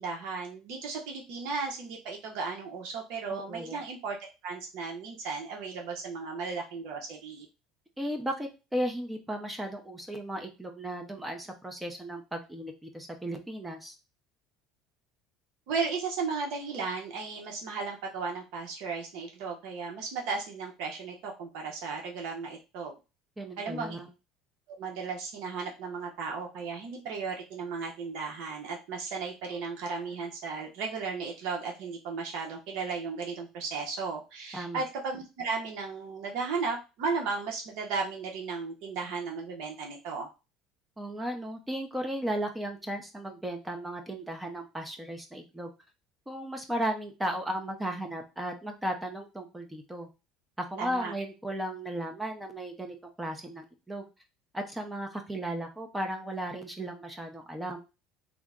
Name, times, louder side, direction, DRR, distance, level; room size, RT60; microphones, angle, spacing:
voice 1, 0.0-4.2 4.4-7.5 15.7-22.9 23.6-24.0 24.8-40.3 50.8-51.1, right 4 dB, 75° right, 0 dB, 0.8 m, -35 dB
voice 2, 3.3-3.8 8.0-13.9 23.4-24.1 34.5-34.8 41.0-45.7 46.3-50.1 50.6-54.1 54.5-57.8, right 1 dB, 10° right, 4 dB, 0.6 m, -35 dB
3.6 x 2.1 x 3.6 m, 0.29 s
supercardioid pair, 115°, 0 cm